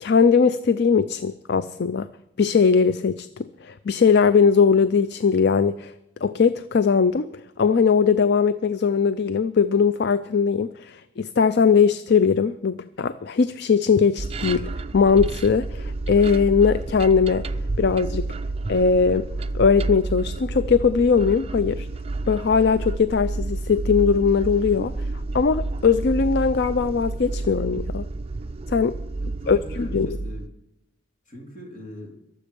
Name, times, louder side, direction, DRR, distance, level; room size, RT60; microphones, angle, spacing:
voice 1, 0.0-2.1 2.4-5.9 6.2-7.3 7.6-17.5 17.8-18.3 18.7-19.3 19.5-21.9 22.3-24.9 25.3-28.1 28.7-29.0 29.5-30.2, left 5 dB, 55° left, 14 dB, 0.4 m, -20 dB
sound 1, 14.2-30.5, right 2 dB, 30° right, 0.4 m, -30 dB
voice 2, 29.2-30.5 31.3-32.2, left 1 dB, 35° left, 2 dB, 2.9 m, -41 dB
22.5 x 7.8 x 5.3 m, 0.87 s
head